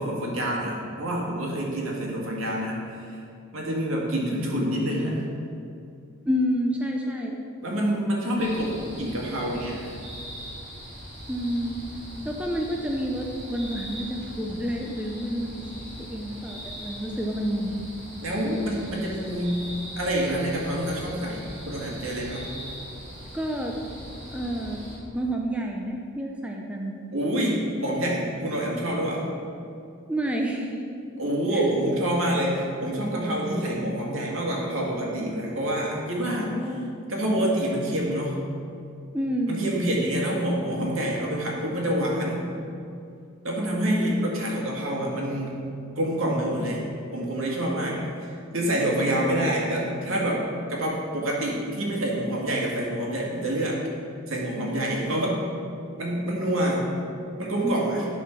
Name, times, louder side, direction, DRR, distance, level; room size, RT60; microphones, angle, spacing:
voice 1, 0.0-3.2 3.5-5.3 7.6-9.9 18.2-19.6 19.9-22.5 27.1-29.3 31.2-36.6 37.1-38.4 39.5-42.4 43.4-45.6 46.0-48.0 48.5-53.8 54.3-55.4 56.0-56.9 57.4-58.1, right 1 dB, 70° right, -3 dB, 2.0 m, -27 dB
voice 2, 6.2-7.4 11.3-11.8 12.2-15.6 16.1-17.8 23.3-23.7 24.3-24.8 25.1-26.9 30.1-30.8 31.5-32.0 36.4-36.9 39.1-39.6 43.8-44.4 49.0-49.5 57.6-57.8, equal, 5° right, 0 dB, 0.5 m, -29 dB
sound 1, 8.4-25.0, equal, 30° right, 2.3 m, -40 dB
11.5 x 4.3 x 6.0 m, 2.4 s
head